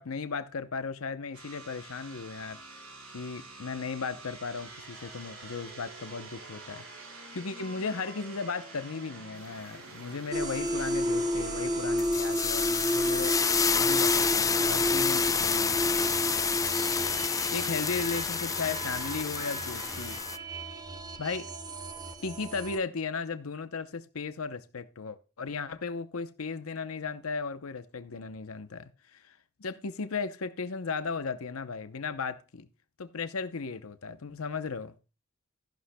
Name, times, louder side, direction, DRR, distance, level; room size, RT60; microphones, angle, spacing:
voice 1, 0.0-2.8 3.1-6.8 7.3-15.8 17.3-20.2 21.2-21.5 22.2-32.7 33.0-34.9, left 4 dB, 75° left, 0.7 m, -36 dB
sound 1, 1.3-20.2, right 3 dB, 85° right, 4.9 m, -47 dB
sound 2, 10.3-22.8, equal, 20° right, 1.1 m, -32 dB
sound 3, 12.0-20.4, left 6 dB, 15° left, 0.4 m, -29 dB
14.5 x 11.5 x 2.2 m
head